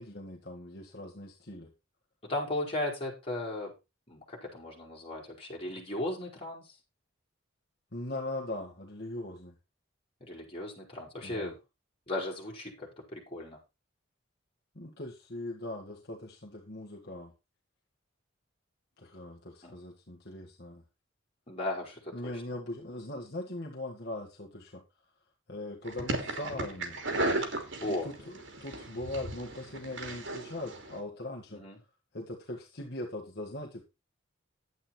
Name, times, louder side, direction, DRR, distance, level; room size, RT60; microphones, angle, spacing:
voice 1, 0.0-1.7 7.9-9.5 11.2-11.5 14.8-17.3 19.0-20.8 22.1-24.8 25.5-27.0 27.9-31.6 32.1-33.8, left 1 dB, 55° left, -1 dB, 1.8 m, -40 dB
voice 2, 2.2-3.7 4.1-6.8 10.2-11.6 12.1-13.6 19.6-19.8 21.5-22.3 27.8-28.1 31.5-31.8, left 1 dB, 30° left, -2 dB, 5.3 m, -36 dB
sound 1, 25.9-31.0, right 2 dB, 70° right, 3.0 m, -35 dB
11.0 x 8.8 x 4.4 m, 0.26 s
head